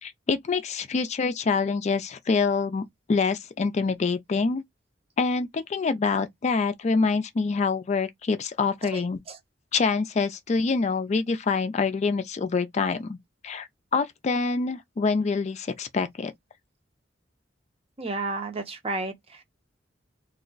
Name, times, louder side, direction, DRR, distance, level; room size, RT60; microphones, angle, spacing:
voice 1, 0.0-4.6 5.2-9.2 9.7-13.2 13.4-16.3, left 4 dB, 40° left, 0.4 m, -26 dB
voice 2, 8.8-9.4 18.0-19.4, right 3 dB, 30° right, 0.7 m, -32 dB
2.3 x 2.1 x 3.8 m
head